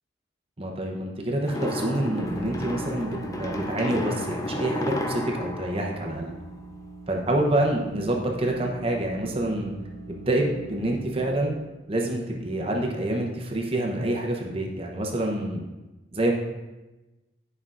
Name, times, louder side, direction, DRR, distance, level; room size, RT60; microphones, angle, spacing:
voice 1, 0.6-6.3 7.1-9.7 10.1-11.5 11.9-15.6 16.1-16.3, right 1 dB, 30° right, 0 dB, 0.7 m, -27 dB
sound 1, 1.4-6.8, left 1 dB, 15° left, 0.4 m, -33 dB
sound 2, 1.8-11.7, right 2 dB, 5° right, 1.1 m, -42 dB
9.6 x 5.4 x 2.5 m, 1.1 s
head